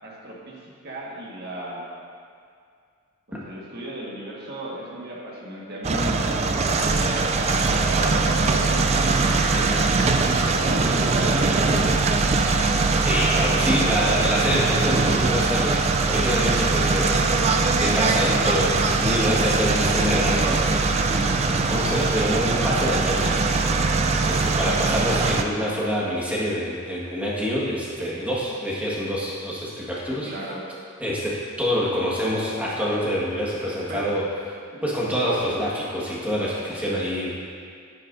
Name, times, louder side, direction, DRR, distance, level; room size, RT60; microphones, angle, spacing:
voice 1, 0.0-1.9 3.3-6.7 7.0-12.1 30.2-30.7 33.9-34.1 34.7-34.8 35.1-35.2, right 1 dB, 45° right, -4 dB, 1.7 m, -34 dB
sound 1, 5.8-25.4, right 3 dB, 30° right, 0.4 m, -21 dB
voice 2, 13.0-15.7 16.1-17.2 17.8-20.6 21.7-23.4 24.2-30.3 31.0-31.3 31.6-34.2 34.8-37.3, equal, 5° right, -7 dB, 1.6 m, -26 dB
11.0 x 9.8 x 2.7 m, 2.2 s
head